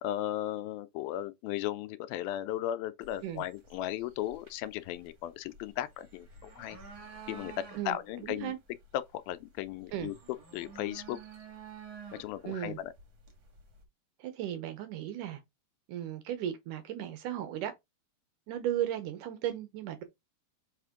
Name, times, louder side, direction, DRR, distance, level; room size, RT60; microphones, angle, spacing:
voice 1, 0.0-6.8 7.3-8.5 8.9-10.1 10.5-11.2 12.2-12.9, left 13 dB, 80° left, 2.4 m, -36 dB
sound 1, 3.0-13.8, right 5 dB, 40° right, 2.0 m, -51 dB
voice 2, 7.7-8.6 9.9-10.1 12.4-12.8 14.2-15.4 15.9-17.7 18.5-20.0, right 11 dB, 75° right, 2.1 m, -36 dB
6.4 x 5.0 x 3.6 m
omnidirectional pair, 4.2 m